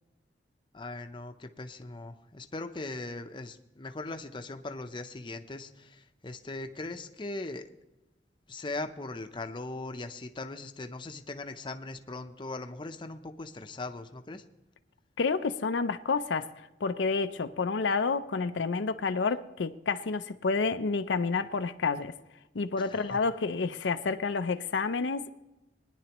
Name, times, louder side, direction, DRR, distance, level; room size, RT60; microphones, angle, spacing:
voice 1, 0.7-7.7 8.5-14.4 22.8-23.2, left 2 dB, 25° left, 0.7 m, -40 dB
voice 2, 15.2-16.5 16.8-22.1 22.5-25.3, left 4 dB, 85° left, 0.6 m, -29 dB
21.0 x 10.0 x 3.0 m
head